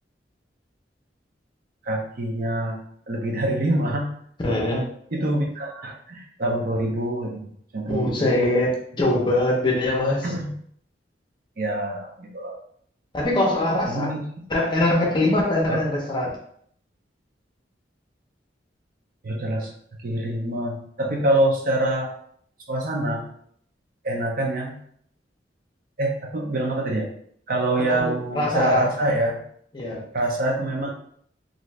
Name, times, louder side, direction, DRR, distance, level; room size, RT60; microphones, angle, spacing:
voice 1, 1.9-2.8 3.1-4.1 5.1-7.5 7.7-8.4 10.2-10.5 11.6-12.5 13.8-14.2 15.7-15.8 19.2-19.7 20.0-22.1 22.7-23.2 24.0-24.8 26.0-27.1 27.5-29.4 30.1-30.9, right 1 dB, 55° right, 0 dB, 0.6 m, -25 dB
voice 2, 4.4-4.8 7.9-10.3 13.1-14.1 14.5-16.4 27.9-28.8 29.7-30.0, left 1 dB, 25° left, -2 dB, 0.6 m, -22 dB
2.6 x 2.4 x 3.2 m, 0.65 s
head